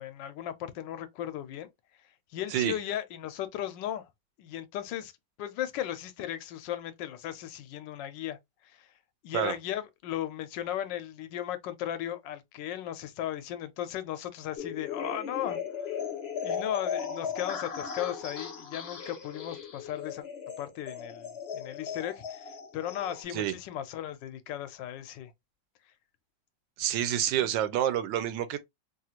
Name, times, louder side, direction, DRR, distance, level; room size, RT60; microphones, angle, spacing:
voice 1, 0.0-1.7 2.3-4.1 4.4-5.1 5.4-8.4 8.6-8.9 9.2-15.9 16.4-20.2 20.6-25.3, left 11 dB, 85° left, 1.3 m, -36 dB
sound 1, 14.5-23.2, left 6 dB, 50° left, 0.8 m, -37 dB
voice 2, 26.8-28.6, right 11 dB, 90° right, 1.3 m, -28 dB
3.2 x 2.4 x 2.8 m
omnidirectional pair, 1.9 m